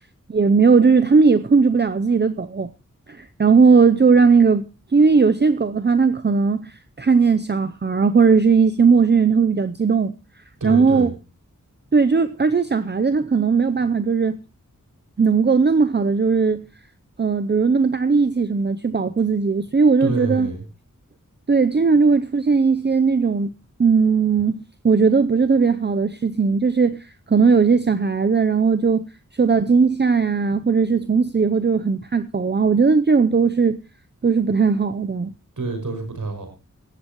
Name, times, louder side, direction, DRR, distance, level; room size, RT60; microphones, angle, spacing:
voice 1, 0.3-2.7 3.1-10.1 10.6-11.1 11.9-14.4 15.2-16.7 17.2-20.5 21.5-23.5 23.8-27.0 27.3-29.1 29.4-33.8 34.2-35.3, right 5 dB, 35° right, 0.6 m, -18 dB
voice 2, 10.6-11.1 20.0-20.6 35.6-36.5, right 3 dB, 75° right, 5.9 m, -27 dB
17.5 x 15.0 x 3.0 m
wide cardioid pair, 90°, 31 cm